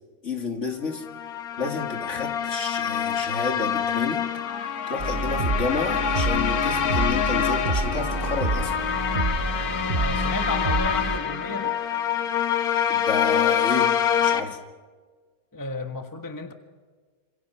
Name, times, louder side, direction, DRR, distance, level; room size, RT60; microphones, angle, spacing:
voice 1, 0.2-1.1 1.6-4.3 4.9-8.8 12.9-13.9 14.2-14.6, left 4 dB, 50° left, 2.6 m, -30 dB
sound 1, 1.0-14.4, left 8 dB, 75° left, 1.6 m, -26 dB
sound 2, 5.0-11.2, right 3 dB, 35° right, 1.1 m, -28 dB
voice 2, 9.9-11.8 15.5-16.5, left 2 dB, 15° left, 1.3 m, -33 dB
26.5 x 26.0 x 5.8 m
omnidirectional pair, 1.6 m